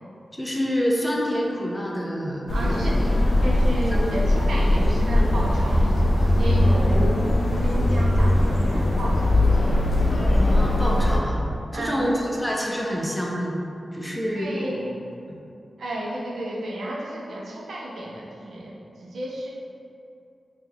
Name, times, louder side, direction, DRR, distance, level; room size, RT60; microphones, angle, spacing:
voice 1, 0.3-3.2 3.9-4.1 10.4-11.4 11.7-13.6 13.9-14.5, equal, 5° left, -3 dB, 0.5 m, -27 dB
sound 1, 2.5-11.2, left 1 dB, 60° left, 0.4 m, -20 dB
voice 2, 2.5-9.8 11.7-12.3 14.3-15.0 15.8-19.5, right 1 dB, 90° right, -3 dB, 0.5 m, -32 dB
2.9 x 2.3 x 3.5 m, 2.5 s
wide cardioid pair, 105°, 0 cm